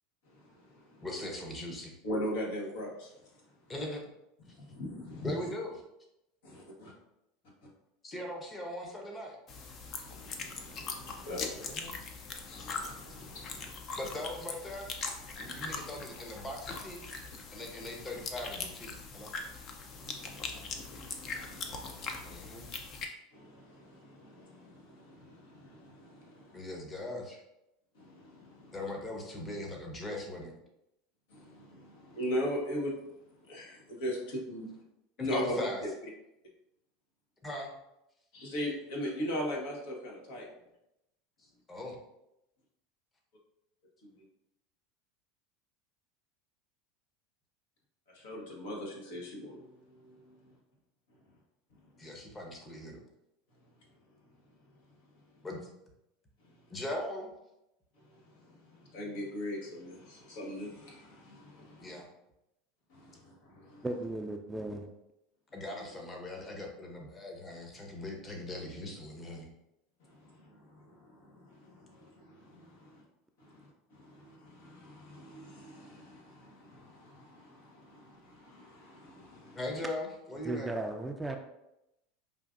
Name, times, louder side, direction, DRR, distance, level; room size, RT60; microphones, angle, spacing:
voice 1, 0.3-1.1 2.0-3.1 4.5-5.3 6.4-6.9 10.0-11.4 12.6-13.7 15.3-15.7 20.0-22.5 23.3-26.6 27.9-28.8 31.3-33.0 33.5-34.8 35.2-35.9 38.3-40.5 48.1-50.5 56.4-56.5 58.2-62.0 62.9-63.8 70.0-73.0 73.4-79.6, equal, 75° left, -2 dB, 1.1 m, -40 dB
voice 2, 1.0-1.9 3.7-4.0 5.2-5.7 8.0-9.4 11.5-12.0 14.0-14.9 15.4-17.0 17.5-19.3 22.2-22.7 26.5-27.4 28.7-30.5 35.2-35.8 37.4-37.7 41.4-42.0 52.0-53.0 55.4-55.6 56.7-57.3 61.8-62.0 65.5-69.5 79.5-80.7, left 1 dB, 25° left, 1 dB, 0.9 m, -40 dB
sound 1, 9.5-23.0, left 4 dB, 45° left, 0.6 m, -41 dB
voice 3, 63.8-64.9 80.4-81.4, right 2 dB, 10° right, 4 dB, 0.4 m, -36 dB
5.0 x 2.5 x 2.5 m, 0.87 s
hypercardioid pair, 95°, 0 cm